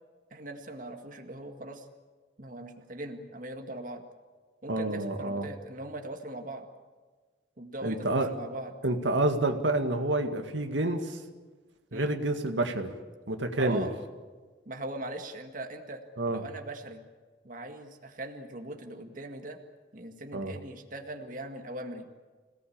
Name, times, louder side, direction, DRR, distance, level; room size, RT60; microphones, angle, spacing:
voice 1, 0.3-1.9 2.4-4.0 4.6-6.7 7.6-8.8 11.9-12.2 13.6-13.9 14.7-16.0 16.3-17.0 17.4-19.6 19.9-22.1, right 1 dB, 45° right, 4 dB, 2.0 m, -40 dB
voice 2, 4.7-5.5 7.8-8.3 8.8-11.2 11.9-12.9 13.3-13.9 16.2-16.4 20.3-20.5, right 2 dB, 80° right, 5 dB, 2.0 m, -28 dB
26.5 x 18.0 x 8.8 m, 1.4 s
head